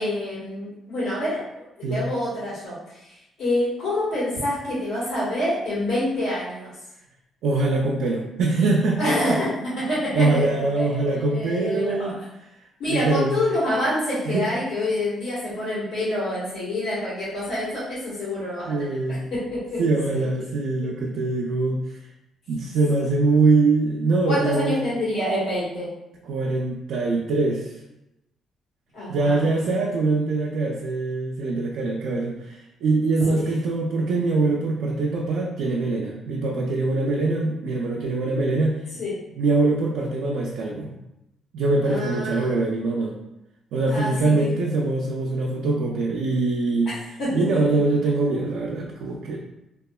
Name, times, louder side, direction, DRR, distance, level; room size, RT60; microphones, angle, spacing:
voice 1, 0.0-6.7 9.0-11.0 11.3-12.1 12.8-19.8 20.1-20.2 21.0-21.1 24.3-25.9 28.9-29.5 33.3-33.5 39.0-39.1 41.8-42.5 43.9-44.5 46.8-47.6, left 1 dB, 85° left, -10 dB, 1.2 m, -27 dB
voice 2, 7.4-9.4 10.1-12.1 12.8-13.3 14.3-14.4 18.7-19.2 19.8-22.0 22.5-24.8 26.3-27.7 29.1-38.8 39.4-40.9 41.5-43.2 43.7-46.9 47.3-49.4, right 3 dB, 80° right, -2 dB, 0.3 m, -23 dB
2.8 x 2.3 x 2.2 m, 0.90 s
cardioid pair, 90°, 0 cm